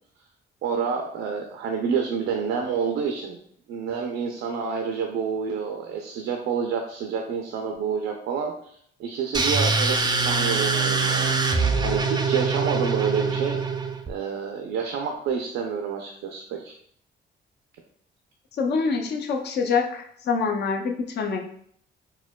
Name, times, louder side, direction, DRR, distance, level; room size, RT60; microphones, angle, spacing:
voice 1, 0.6-3.4 3.7-11.3 11.8-13.6 14.1-16.7, right 6 dB, 85° right, 2 dB, 0.5 m, -28 dB
sound 1, 9.3-14.1, right 4 dB, 20° right, 0.4 m, -23 dB
voice 2, 18.6-21.4, left 5 dB, 60° left, 2 dB, 0.5 m, -25 dB
4.5 x 2.2 x 2.2 m, 0.64 s
cardioid pair, 90°, 20 cm